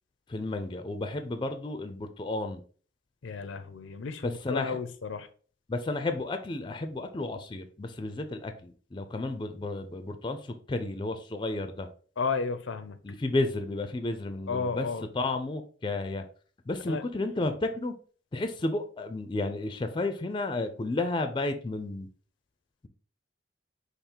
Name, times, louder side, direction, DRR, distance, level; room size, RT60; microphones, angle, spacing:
voice 1, 0.3-2.6 4.2-4.8 5.7-11.9 13.0-14.9 15.1-16.2 16.7-17.9 18.3-22.1, left 2 dB, 25° left, 8 dB, 0.4 m, -32 dB
voice 2, 3.2-5.3 12.2-13.0 14.5-15.1 16.9-17.0, left 5 dB, 85° left, 10 dB, 0.5 m, -33 dB
5.5 x 2.0 x 4.4 m, 0.43 s
head